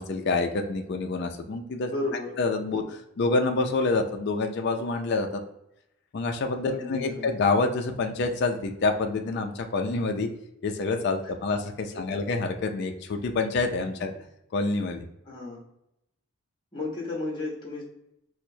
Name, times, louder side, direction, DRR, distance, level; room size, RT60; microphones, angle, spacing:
voice 1, 0.0-1.9 2.4-5.4 6.1-10.3 10.6-14.1 14.5-15.0, left 3 dB, 50° left, 4 dB, 0.3 m, -27 dB
voice 2, 1.9-2.3 6.7-7.3 11.9-12.2 15.3-15.6 16.7-17.8, left 2 dB, 20° left, -3 dB, 0.8 m, -33 dB
4.4 x 2.0 x 2.6 m, 0.81 s
head